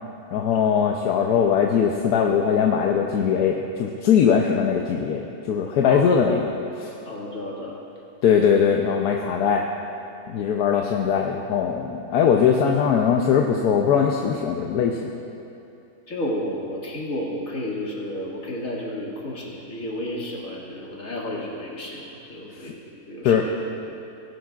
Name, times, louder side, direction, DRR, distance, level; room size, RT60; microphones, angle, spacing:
voice 1, 0.3-6.9 8.2-9.6 10.3-15.1 22.6-22.7 23.2-23.5, left 7 dB, 80° left, 1 dB, 1.2 m, -21 dB
voice 2, 5.8-6.1 7.0-7.8 16.1-23.5 23.9-24.0, left 1 dB, 60° left, -4 dB, 2.4 m, -32 dB
19.0 x 11.0 x 2.4 m, 2.8 s
omnidirectional pair, 1.6 m